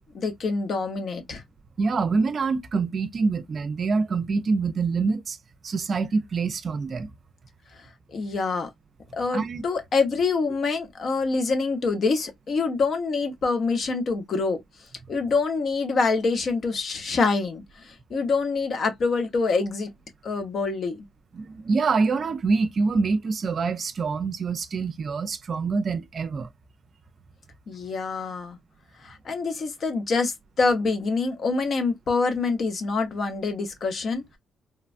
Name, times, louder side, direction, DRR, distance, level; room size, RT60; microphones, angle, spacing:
voice 1, 0.0-1.4 8.1-8.7 9.1-14.6 15.1-19.9 20.2-21.0 27.7-28.6 29.0-34.4, left 4 dB, 55° left, 0.9 m, -26 dB
voice 2, 1.8-5.4 5.6-7.1 9.3-9.6 21.3-26.5, right 4 dB, 45° right, 0.5 m, -25 dB
3.1 x 2.2 x 2.5 m
cardioid pair, 90°, 0 cm